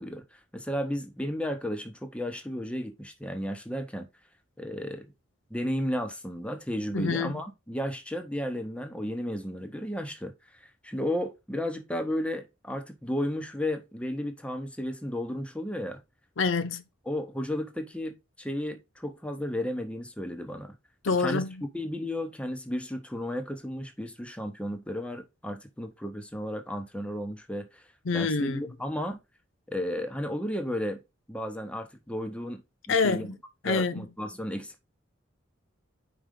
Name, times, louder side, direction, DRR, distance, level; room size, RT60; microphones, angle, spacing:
voice 1, 0.0-4.1 4.6-5.1 5.5-16.0 17.1-20.7 21.2-27.8 28.1-29.2 29.7-31.0 31.3-32.6 32.9-33.3 33.6-34.8, equal, 5° left, 0.9 m, -33 dB
voice 2, 6.9-7.3 16.4-16.8 21.0-21.6 28.1-28.6 32.9-33.4 33.6-34.1, left 4 dB, 75° left, 0.6 m, -26 dB
5.1 x 4.3 x 5.3 m
head